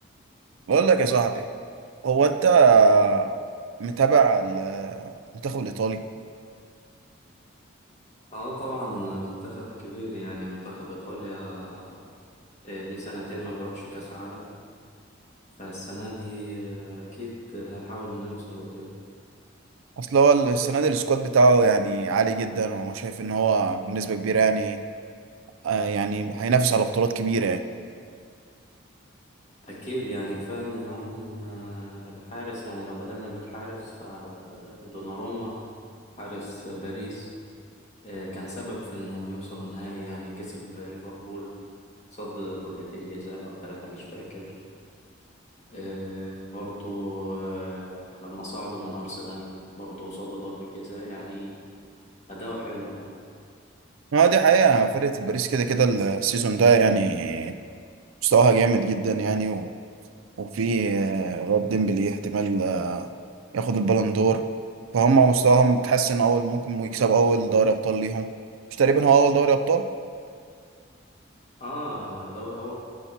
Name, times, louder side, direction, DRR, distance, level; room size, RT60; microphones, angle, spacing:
voice 1, 0.7-1.4 2.0-3.3 3.8-5.1 5.4-6.0 20.0-24.8 25.6-27.6 54.1-57.5 58.2-59.7 60.4-63.1 63.5-64.4 64.9-68.3 68.8-69.8, right 5 dB, 80° right, 8 dB, 0.4 m, -21 dB
voice 2, 8.3-12.0 12.6-14.5 15.6-18.9 29.6-35.5 36.2-37.3 38.0-41.5 42.1-44.5 45.7-49.5 49.8-51.5 52.3-53.1 71.6-72.7, equal, 35° left, -5 dB, 1.8 m, -36 dB
15.0 x 5.7 x 2.8 m, 2.2 s
head